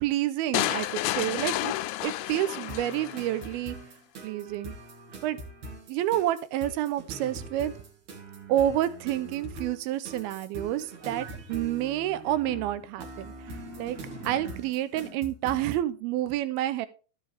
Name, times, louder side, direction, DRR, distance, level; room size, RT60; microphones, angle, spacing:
voice 1, 0.0-1.7 2.0-3.8 4.2-4.7 5.2-5.4 5.9-7.7 8.5-13.3 13.8-14.0 14.2-16.9, right 13 dB, 85° right, 14 dB, 2.6 m, -29 dB
sound 1, 0.5-3.5, left 16 dB, 85° left, 2.5 m, -31 dB
sound 2, 2.7-15.8, right 2 dB, 50° right, 2.9 m, -42 dB
14.0 x 7.4 x 3.4 m, 0.34 s
omnidirectional pair, 4.4 m